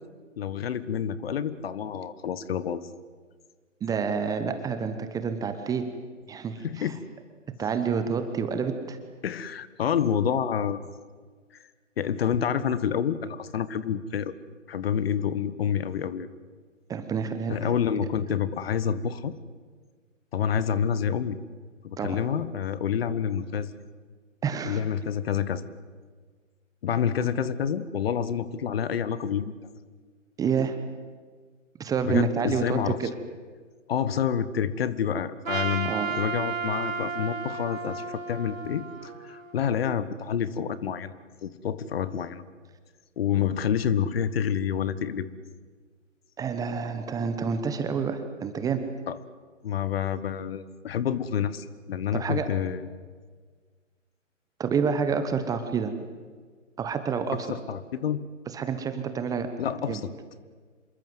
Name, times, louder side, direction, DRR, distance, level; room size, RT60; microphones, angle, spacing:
voice 1, 0.4-2.8 6.6-7.0 9.2-10.9 12.0-14.4 14.7-16.3 17.5-19.3 20.3-21.4 21.8-23.7 24.6-25.6 26.8-29.5 32.0-33.0 33.9-41.1 41.4-42.4 43.2-45.3 49.1-49.2 49.6-52.9 57.5-58.2 59.6-60.1, left 8 dB, 50° left, 15 dB, 1.5 m, -28 dB
voice 2, 3.8-5.9 6.3-7.0 7.6-9.0 16.9-17.6 22.0-22.2 24.4-24.8 30.4-30.8 31.8-33.1 35.8-36.1 46.4-48.8 52.1-52.5 54.6-55.9 56.8-57.5 58.5-59.5 59.8-60.0, right 6 dB, 10° right, 9 dB, 1.0 m, -28 dB
Trumpet, 35.4-39.7, right 4 dB, 85° right, 2.3 m, -33 dB
27.0 x 23.0 x 7.9 m, 1.5 s
figure-of-eight pair, 135°, 39 cm